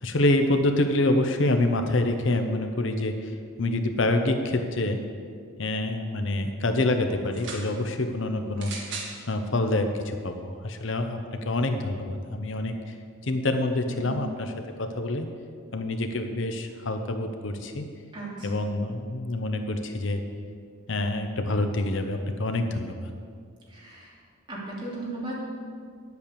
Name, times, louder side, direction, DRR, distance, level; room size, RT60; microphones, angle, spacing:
voice 1, 0.0-3.3 3.6-5.0 5.6-8.8 9.3-11.2 11.4-12.7 13.2-15.3 15.7-17.9 18.4-20.2 20.9-22.9, left 2 dB, 65° left, 6 dB, 0.8 m, -26 dB
sound 1, 7.2-7.7 8.6-9.2 10.0-10.1, right 4 dB, 60° right, 1.9 m, -37 dB
voice 2, 13.9-14.3 18.1-18.5 23.7-24.1 24.5-25.3, right 2 dB, 25° right, -6 dB, 2.9 m, -36 dB
10.0 x 8.4 x 6.9 m, 2.1 s
head